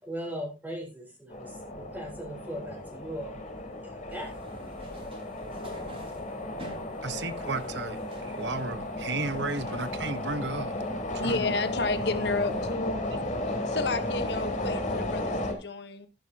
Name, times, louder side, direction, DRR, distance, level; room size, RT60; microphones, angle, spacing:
voice 1, 0.0-3.4 3.8-4.4, equal, 10° right, 4.5 m, -39 dB
sound 1, 1.3-15.5, left 1 dB, 40° left, 4.4 m, -34 dB
sound 2, 4.1-12.7, right 1 dB, 30° right, 4.9 m, -51 dB
voice 2, 7.0-10.7 11.1-11.5, right 3 dB, 65° right, 1.3 m, -34 dB
voice 3, 11.2-13.0 13.6-16.1, left 3 dB, 60° left, 1.3 m, -31 dB
14.5 x 11.5 x 2.9 m
head